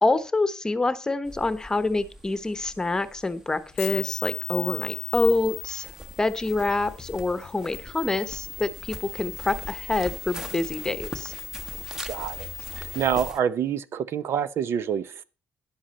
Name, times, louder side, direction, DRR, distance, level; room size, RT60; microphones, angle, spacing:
voice 1, 0.0-5.9 6.2-11.3, left 3 dB, 15° left, 1.0 m, -26 dB
sound 1, 1.2-13.4, equal, 10° right, 1.0 m, -43 dB
sound 2, 3.7-13.3, left 10 dB, 65° left, 0.8 m, -38 dB
voice 2, 12.1-12.5 12.8-15.2, right 8 dB, 55° right, 0.7 m, -27 dB
13.0 x 10.0 x 4.2 m
cardioid pair, 150°, 5 cm